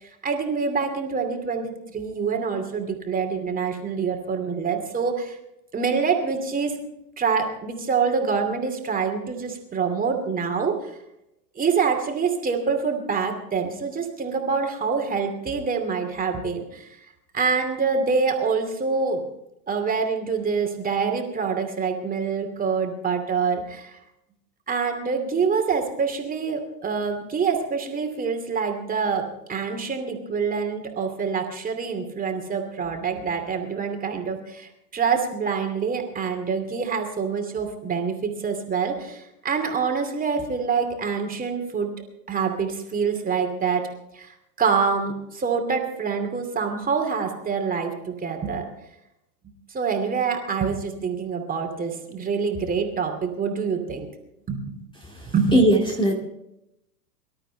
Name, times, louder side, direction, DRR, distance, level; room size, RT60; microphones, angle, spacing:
voice 1, 0.0-5.4 5.7-6.8 7.2-10.9 11.6-17.0 17.3-19.2 19.7-24.0 24.7-41.9 42.3-43.8 44.1-48.6 49.7-54.1 54.5-54.8 55.3-55.6, right 5 dB, 15° right, 3 dB, 2.6 m, -26 dB
voice 2, 55.5-56.1, right 1 dB, 10° left, 1 dB, 2.1 m, -18 dB
24.5 x 12.5 x 3.4 m, 0.86 s
figure-of-eight pair, 100°, 49 cm